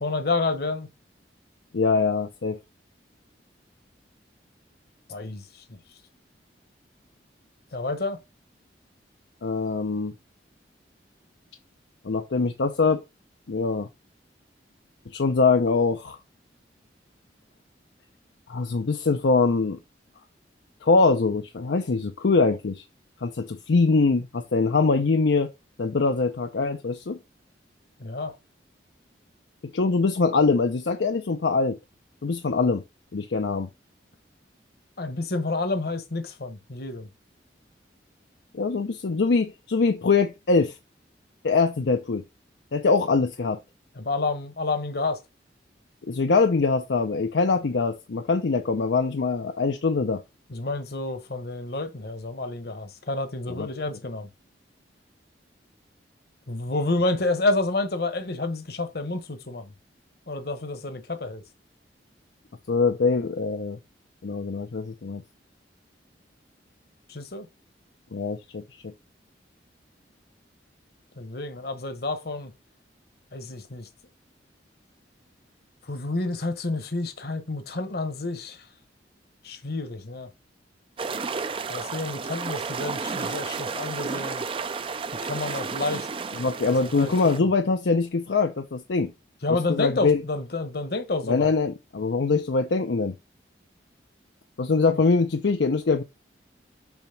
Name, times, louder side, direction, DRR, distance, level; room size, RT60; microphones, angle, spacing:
voice 1, 0.0-0.9 5.1-5.4 7.7-8.2 28.0-28.3 35.0-37.1 44.0-45.2 50.5-54.3 56.5-59.6 60.3-61.4 67.1-67.4 71.2-72.5 73.3-73.8 75.9-78.6 79.4-80.3 81.7-84.4 85.2-86.1 86.8-87.3 89.4-91.5 94.9-95.0, left 2 dB, 55° left, 1.1 m, -29 dB
voice 2, 1.7-2.6 9.4-10.1 12.0-13.0 13.5-13.9 15.1-16.2 18.5-19.8 20.8-22.8 23.2-25.5 25.8-27.2 29.7-31.8 32.2-32.8 33.1-33.7 38.5-40.8 41.4-42.2 42.7-43.6 46.1-50.2 53.5-53.7 62.7-63.8 64.2-65.2 68.1-68.9 86.3-89.1 89.5-90.2 91.2-93.1 94.6-96.0, left 4 dB, 75° left, 0.6 m, -23 dB
sound 1, 81.0-87.4, right 4 dB, 30° right, 0.4 m, -32 dB
7.1 x 2.8 x 5.8 m
head